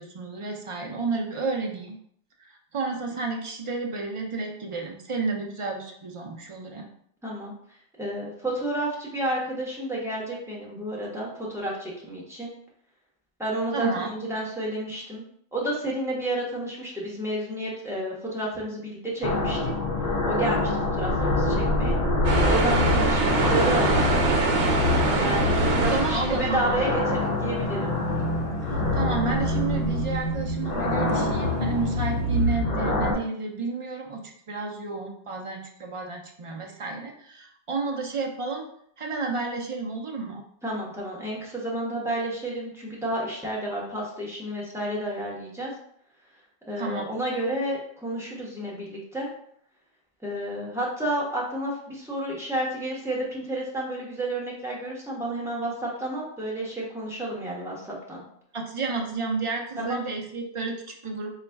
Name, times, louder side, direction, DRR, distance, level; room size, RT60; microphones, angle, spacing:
voice 1, 0.0-2.0 2.4-6.9 13.7-14.1 25.9-26.8 28.7-38.7 39.0-40.4 46.8-47.1 58.5-61.3, right 4 dB, 45° right, 1 dB, 0.4 m, -31 dB
voice 2, 7.2-7.5 8.0-12.5 13.4-15.2 15.5-19.7 20.3-22.0 22.5-24.1 25.2-28.0 40.6-45.7 46.6-49.3 50.2-58.2 59.8-60.0, right 1 dB, 5° right, -4 dB, 0.9 m, -31 dB
sound 1, 19.2-33.1, left 2 dB, 50° left, 0.6 m, -25 dB
sound 2, 22.2-27.1 27.5-27.8 28.1-28.8 30.5-30.6 31.0-31.9, right 3 dB, 85° right, 0.9 m, -25 dB
4.0 x 2.3 x 3.4 m, 0.67 s
omnidirectional pair, 1.2 m